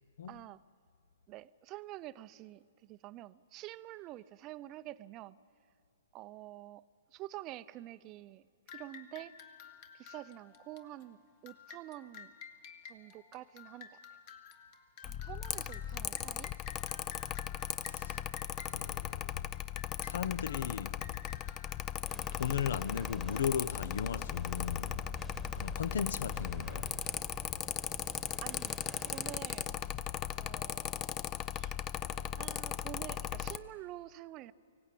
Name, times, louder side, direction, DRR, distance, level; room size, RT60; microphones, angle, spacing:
voice 1, 0.3-0.6 1.3-5.4 6.1-6.8 7.1-8.4 8.7-9.3 9.9-12.3 12.8-14.2 15.0-16.5 28.4-29.7 30.4-31.1 31.5-31.8 32.4-34.5, right 15 dB, 30° right, 0.5 m, -48 dB
Dancing Ducks Music Box, 8.7-22.8, left 6 dB, 40° left, 1.6 m, -53 dB
Mechanical fan, 15.0-33.6, left 11 dB, 25° left, 0.5 m, -38 dB
voice 2, 17.8-18.2 18.7-19.5 20.0-20.9 22.3-25.0 25.5-26.9, left 8 dB, 70° left, 0.7 m, -36 dB
sound 1, 22.0-29.4, right 2 dB, 5° right, 1.3 m, -49 dB
24.0 x 17.5 x 8.5 m
hypercardioid pair, 140°, 0 cm